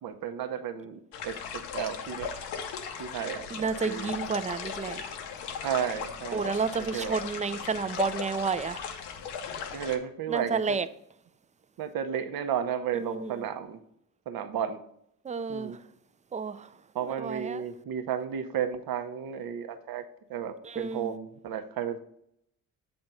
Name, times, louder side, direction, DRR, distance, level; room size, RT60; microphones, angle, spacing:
voice 1, 0.0-2.3 3.0-4.1 5.6-6.5 6.8-7.2 9.7-10.8 11.8-13.8 14.3-14.8 15.5-15.8 16.9-20.0 20.3-22.0, right 8 dB, 60° right, 0.8 m, -33 dB
sound 1, 1.1-10.0, left 7 dB, 75° left, 0.8 m, -37 dB
voice 2, 3.5-5.0 6.3-8.8 10.3-10.9 13.0-13.3 15.2-15.8 16.3-16.7 17.2-17.6 20.6-21.1, right 5 dB, 20° right, 0.4 m, -31 dB
7.7 x 3.5 x 5.4 m
hypercardioid pair, 45°, 40 cm